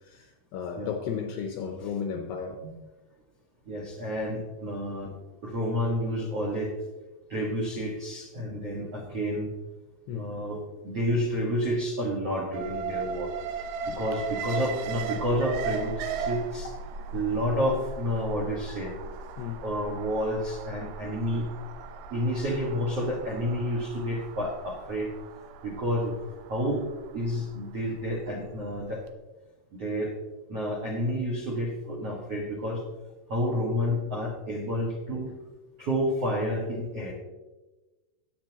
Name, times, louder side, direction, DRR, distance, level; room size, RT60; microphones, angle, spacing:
voice 1, 0.1-2.6 10.1-10.3 19.4-19.6, left 7 dB, 75° left, 2.6 m, -34 dB
voice 2, 3.6-5.2 5.4-6.8 7.3-9.5 10.1-13.3 13.9-16.7 17.1-18.9 19.6-21.5 22.1-25.1 25.6-26.8 27.1-29.0 29.7-30.1 30.5-32.8 33.3-35.4 35.8-37.1, equal, 60° right, 1.5 m, -30 dB
Alarm, 12.5-28.6 29.0-29.1, right 5 dB, 80° right, 3.5 m, -37 dB
19.0 x 8.0 x 3.0 m
omnidirectional pair, 5.8 m